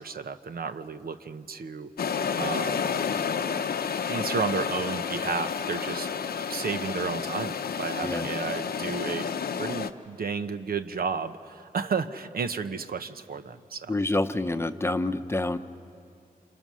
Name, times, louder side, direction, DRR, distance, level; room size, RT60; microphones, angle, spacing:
voice 1, 0.0-1.9 2.4-2.9 4.1-6.1 6.5-13.9, right 5 dB, 75° right, 9 dB, 0.9 m, -32 dB
sound 1, 2.0-9.9, left 6 dB, 85° left, 0.8 m, -30 dB
voice 2, 13.9-15.6, left 2 dB, 15° left, 9 dB, 0.8 m, -27 dB
28.0 x 27.5 x 6.3 m, 2.5 s
wide cardioid pair, 95°, 16 cm